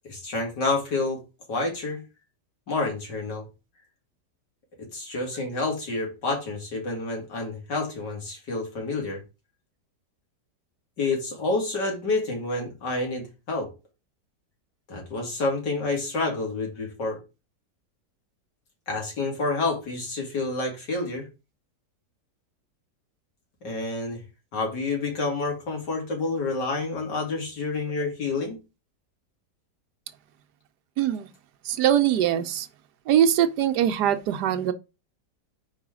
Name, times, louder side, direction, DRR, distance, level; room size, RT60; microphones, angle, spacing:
voice 1, 0.0-1.2 1.5-2.0 2.7-3.5 4.9-9.2 11.0-13.7 14.9-17.2 18.9-21.3 23.6-24.2 24.5-28.6, left 3 dB, 75° left, 3.0 m, -28 dB
voice 2, 31.0-31.3 31.7-32.7 33.1-34.7, right 10 dB, 75° right, 1.2 m, -22 dB
4.9 x 4.7 x 6.1 m
omnidirectional pair, 1.9 m